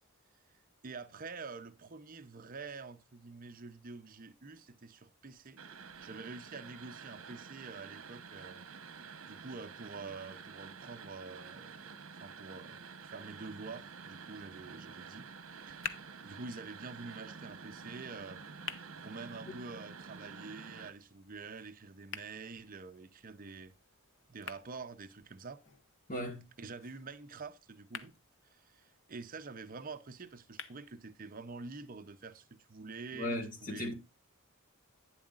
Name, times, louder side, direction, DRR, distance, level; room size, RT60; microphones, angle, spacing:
voice 1, 0.8-5.6 6.0-8.6 9.3-15.3 15.5-18.4 19.0-23.7 24.3-25.6 26.6-28.1 28.4-33.9, right 4 dB, 40° right, 0.6 m, -47 dB
sound 1, 5.6-20.9, right 5 dB, 60° right, 1.1 m, -49 dB
sound 2, 15.4-31.4, left 7 dB, 55° left, 0.8 m, -51 dB
voice 2, 26.1-26.5 33.1-33.9, left 1 dB, 40° left, 1.5 m, -37 dB
11.0 x 9.6 x 2.4 m
head